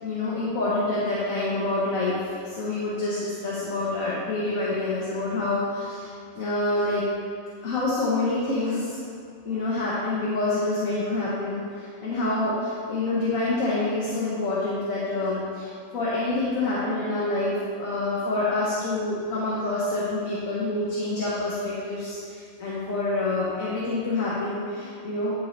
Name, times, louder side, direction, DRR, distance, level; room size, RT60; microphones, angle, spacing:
voice 1, 0.0-7.0 7.6-9.0 9.4-25.3, left 2 dB, 80° left, -8 dB, 1.5 m, -27 dB
10.5 x 3.9 x 3.2 m, 2.3 s
omnidirectional pair, 1.4 m